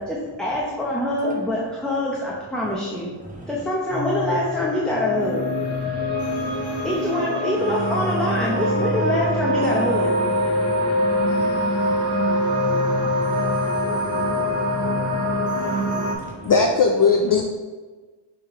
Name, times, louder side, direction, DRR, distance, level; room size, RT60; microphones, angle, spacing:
voice 1, 0.0-3.1 3.5-5.5 6.8-10.2 15.6-15.7, left 1 dB, ahead, -5 dB, 0.7 m, -25 dB
sound 1, 3.9-16.1, left 1 dB, 35° right, 1.8 m, -23 dB
voice 2, 5.8-6.9 10.5-16.5, right 2 dB, 15° right, -3 dB, 1.2 m, -40 dB
voice 3, 16.4-17.4, left 4 dB, 45° left, 3 dB, 0.4 m, -17 dB
6.0 x 3.5 x 4.6 m, 1.3 s
wide cardioid pair, 155°, 50 cm